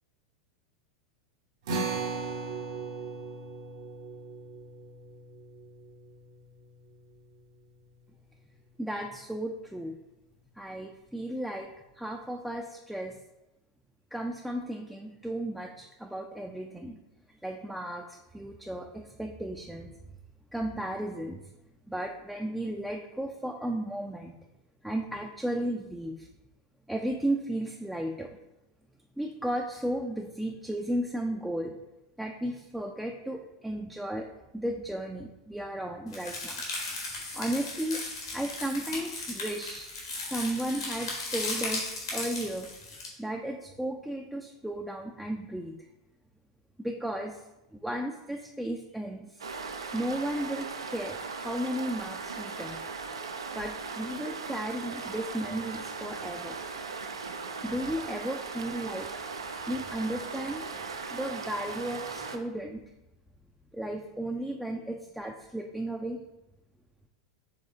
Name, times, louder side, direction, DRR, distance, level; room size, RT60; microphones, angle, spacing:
sound 1, 1.7-8.3, right 4 dB, 60° right, 0.8 m, -38 dB
voice 1, 8.8-9.9 10.6-11.7 12.0-13.2 14.1-17.0 17.4-19.9 20.5-21.4 21.9-24.3 24.8-26.3 26.9-28.4 29.2-31.8 32.2-34.3 34.5-36.6 37.3-39.9 40.2-41.9 42.1-42.7 43.2-45.8 46.8-47.4 47.7-49.4 49.9-52.8 53.5-56.6 57.6-59.1 59.7-60.6 61.1-62.8 63.7-66.2, right 1 dB, 5° right, 1 dB, 0.4 m, -34 dB
sound 2, 36.1-43.1, left 2 dB, 75° left, 1.3 m, -36 dB
sound 3, 49.4-62.4, right 4 dB, 80° right, 0.4 m, -38 dB
5.0 x 3.4 x 2.7 m, 0.94 s
figure-of-eight pair, 90°, 3 cm